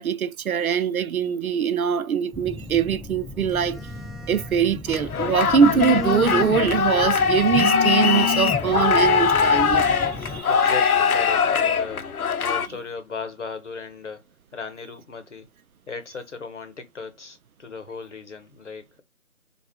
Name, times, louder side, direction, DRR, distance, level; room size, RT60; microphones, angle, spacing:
voice 1, 0.0-3.8 4.3-10.5, right 7 dB, 80° right, 0.5 m, -22 dB
Telephone, 2.3-10.4, left 3 dB, ahead, 0.4 m, -32 dB
sound 1, 4.9-12.7, left 6 dB, 85° left, 0.6 m, -21 dB
voice 2, 10.5-14.2 14.5-15.5 15.9-19.0, left 4 dB, 55° left, 0.8 m, -37 dB
3.3 x 2.4 x 3.4 m
figure-of-eight pair, 175°, 43 cm